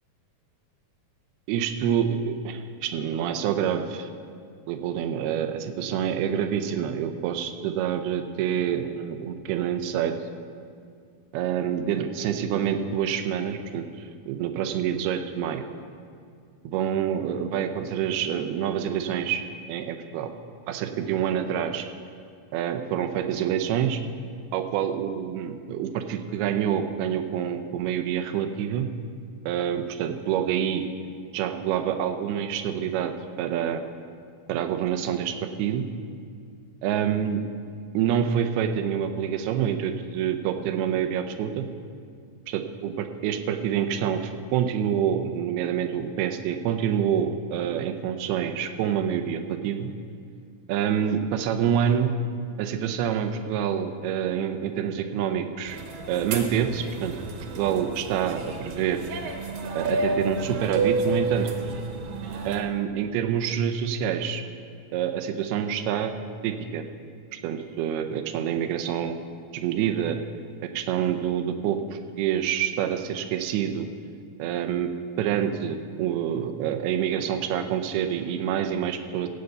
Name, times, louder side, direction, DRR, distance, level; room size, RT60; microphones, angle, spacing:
voice 1, 1.5-4.1 4.7-10.2 11.3-15.7 16.6-19.4 19.7-20.3 20.7-21.8 22.5-24.0 24.5-28.9 29.5-30.9 31.3-33.1 33.4-33.8 34.5-35.8 36.8-37.4 37.9-41.7 42.5-49.9 50.7-52.1 52.6-55.8 56.1-57.1 57.5-59.1 59.7-61.5 62.5-64.4 64.9-66.1 66.4-66.8 67.3-69.2 69.5-70.2 70.7-73.9 74.4-74.9 75.2-79.3, right 9 dB, 90° right, 7 dB, 2.7 m, -27 dB
sound 1, 55.7-62.6, right 3 dB, 70° right, 2.6 m, -30 dB
15.5 x 5.4 x 8.0 m, 2.2 s
omnidirectional pair, 4.4 m